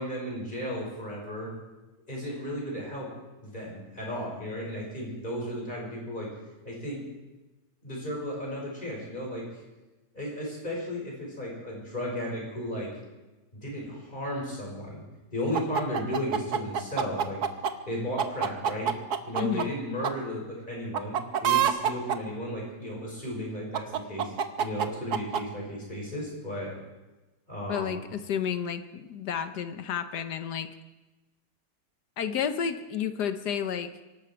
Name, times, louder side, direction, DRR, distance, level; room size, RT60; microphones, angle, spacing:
voice 1, 0.0-1.5 2.1-3.1 3.4-6.3 6.6-7.0 7.8-9.4 10.1-12.9 13.5-15.0 15.3-17.4 17.9-18.9 19.3-24.3 24.6-26.7 27.5-28.0, equal, 30° left, -3 dB, 5.9 m, -34 dB
sound 1, 15.5-17.7 18.2-19.6 20.0-20.1 20.9-22.2 23.7-25.4, right 8 dB, 80° right, 1.4 m, -26 dB
voice 2, 19.4-19.7 27.7-30.7 32.2-33.9, left 8 dB, 80° left, 9 dB, 1.6 m, -31 dB
25.0 x 12.0 x 4.6 m, 1.1 s
omnidirectional pair, 1.7 m